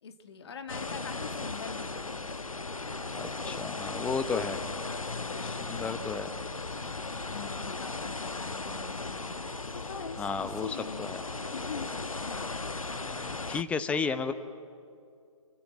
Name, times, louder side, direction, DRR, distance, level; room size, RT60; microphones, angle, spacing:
voice 1, 0.0-2.1 4.8-6.6 7.2-9.4 9.7-11.1 11.5-11.9 12.2-12.7, left 6 dB, 50° left, 7 dB, 2.1 m, -44 dB
sound 1, 0.7-13.6, left 3 dB, 90° left, 1.0 m, -37 dB
voice 2, 3.1-4.6 5.4-6.3 10.2-10.7 11.0-11.2 13.0-14.3, left 5 dB, 5° left, 10 dB, 0.8 m, -33 dB
30.0 x 24.0 x 7.9 m, 2.4 s
figure-of-eight pair, 135°, 17 cm